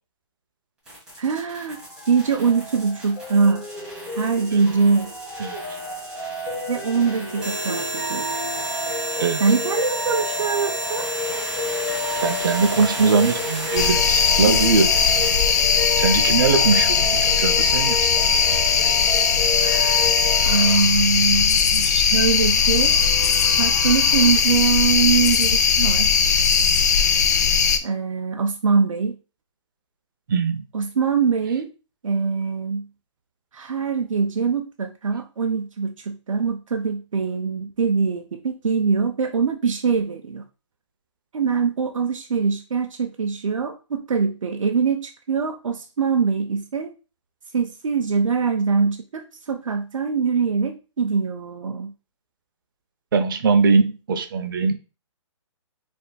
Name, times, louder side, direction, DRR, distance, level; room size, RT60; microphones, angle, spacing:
sound 1, 0.9-15.4, right 1 dB, 5° right, 1.6 m, -32 dB
voice 1, 1.2-1.8 2.1-3.6 4.1-5.1 6.7-8.3 9.4-11.1 19.6-20.1 20.4-22.9 23.4-26.3 27.8-29.2 30.7-31.7 32.0-32.9 33.5-40.4 41.3-46.9 47.5-51.9, right 5 dB, 85° right, 0.6 m, -23 dB
sound 2, 1.4-20.8, left 2 dB, 15° left, 1.1 m, -31 dB
voice 2, 12.2-14.9 16.0-18.1 30.3-30.6 53.1-54.8, right 4 dB, 40° right, 0.6 m, -21 dB
sound 3, 13.8-27.8, left 6 dB, 35° left, 0.4 m, -19 dB
4.0 x 3.4 x 2.2 m
hypercardioid pair, 165°, 16 cm